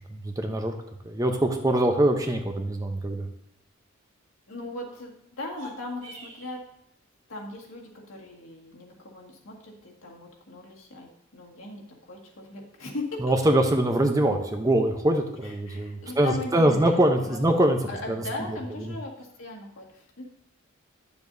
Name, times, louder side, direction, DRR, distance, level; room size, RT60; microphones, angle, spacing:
voice 1, 0.1-0.7 1.0-3.3 13.2-17.8 18.1-18.2 18.5-18.9, right 1 dB, 15° right, 4 dB, 0.7 m, -23 dB
voice 2, 4.5-6.6 7.3-13.1 15.4-17.5 17.9-20.2, left 2 dB, 75° left, -1 dB, 1.8 m, -39 dB
sound 1, 5.4-6.6, equal, 60° right, 1.9 m, -45 dB
10.5 x 7.1 x 2.7 m, 0.78 s
head